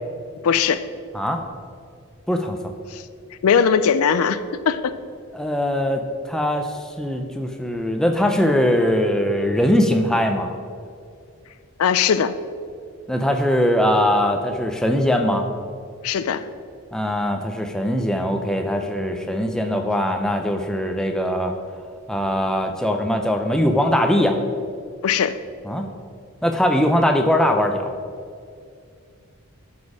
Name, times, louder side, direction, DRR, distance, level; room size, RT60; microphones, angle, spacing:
voice 1, 0.4-0.9 2.9-3.0 3.4-4.9 11.8-12.3 16.0-16.5 25.0-25.4, left 7 dB, 80° left, 13 dB, 0.4 m, -19 dB
voice 2, 2.3-2.7 5.3-10.5 13.1-15.5 16.9-21.5 22.1-24.4 25.7-25.8 26.4-27.9, equal, 5° left, 4 dB, 0.5 m, -21 dB
12.0 x 4.3 x 4.8 m, 2.3 s
head